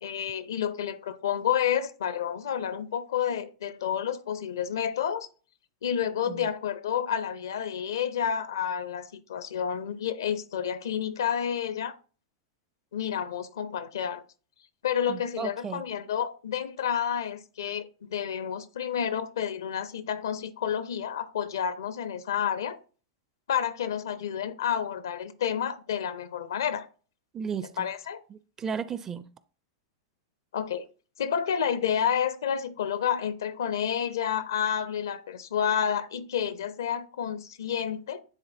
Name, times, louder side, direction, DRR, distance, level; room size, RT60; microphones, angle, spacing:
voice 1, 0.0-5.3 5.8-12.0 12.9-14.2 14.8-22.8 23.5-26.9 27.8-28.2 30.5-30.8 31.2-38.2, left 8 dB, 65° left, 0.5 m, -30 dB
voice 2, 15.1-15.8 27.3-27.9 28.3-29.3, right 6 dB, 20° right, 0.4 m, -35 dB
9.8 x 3.9 x 2.6 m
figure-of-eight pair, 95°, 2 cm